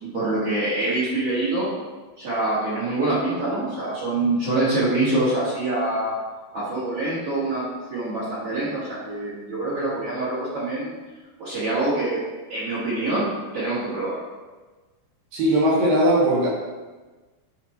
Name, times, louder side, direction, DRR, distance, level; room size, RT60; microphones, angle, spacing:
voice 1, 0.0-1.7 2.2-6.2 6.5-10.9 11.4-12.2 12.5-14.2, right 2 dB, 45° right, -9 dB, 2.4 m, -25 dB
voice 2, 15.3-16.5, right 1 dB, 60° right, -5 dB, 3.0 m, -19 dB
10.0 x 4.2 x 4.6 m, 1.2 s
omnidirectional pair, 4.9 m